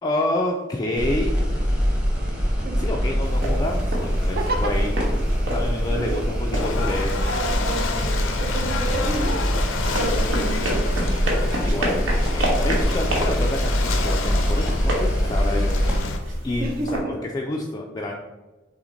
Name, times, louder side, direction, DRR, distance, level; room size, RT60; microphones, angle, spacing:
voice 1, 0.0-1.3 2.8-5.0 5.5-7.2 11.6-18.1, left 1 dB, 20° left, -1 dB, 0.3 m, -28 dB
sound 1, 1.0-16.0, equal, 5° right, 0.8 m, -24 dB
sound 2, 3.2-17.0, right 1 dB, 80° right, 1.2 m, -29 dB
voice 2, 4.4-4.9 5.9-6.2 7.2-9.5 10.0-10.9 16.6-17.2, right 2 dB, 50° right, 2 dB, 0.6 m, -30 dB
Ocean / Boat Water vehicle, 6.5-16.2, left 3 dB, 80° left, 0.5 m, -29 dB
5.7 x 2.1 x 3.9 m, 1.1 s
head